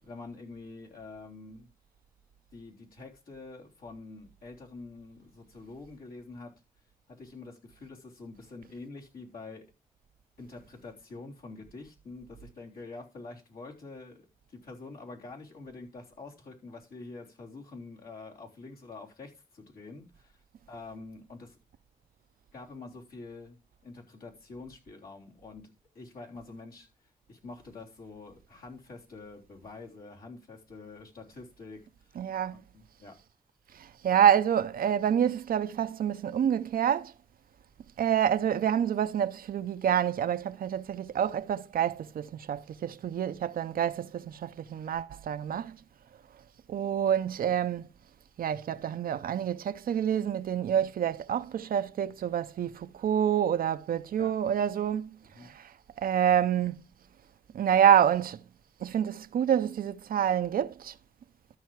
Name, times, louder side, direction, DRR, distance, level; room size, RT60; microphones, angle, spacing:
voice 1, 0.0-1.7 2.5-6.5 7.1-9.7 10.4-20.4 20.7-21.6 22.5-23.6 23.8-26.9 27.3-31.8 32.1-32.2 32.5-33.2 54.2-54.3 55.3-55.5, left 3 dB, 85° left, 3.5 m, -46 dB
voice 2, 32.2-32.6 33.7-37.1 38.0-45.8 46.7-47.9 48.4-56.9 57.5-58.4 58.8-61.0, right 9 dB, 80° right, 0.6 m, -27 dB
13.0 x 5.6 x 4.6 m
cardioid pair, 55°, 15 cm